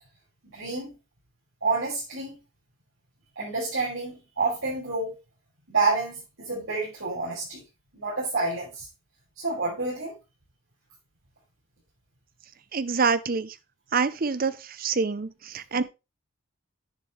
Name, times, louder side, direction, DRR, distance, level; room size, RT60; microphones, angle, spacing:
voice 1, 0.5-0.9 1.6-2.4 3.4-5.2 5.7-7.6 7.9-8.9 9.4-10.1 15.7-15.8, right 3 dB, 75° right, 5.7 m, -28 dB
voice 2, 12.7-13.6 13.9-15.8, right 5 dB, 45° right, 0.6 m, -26 dB
10.5 x 6.7 x 3.2 m
head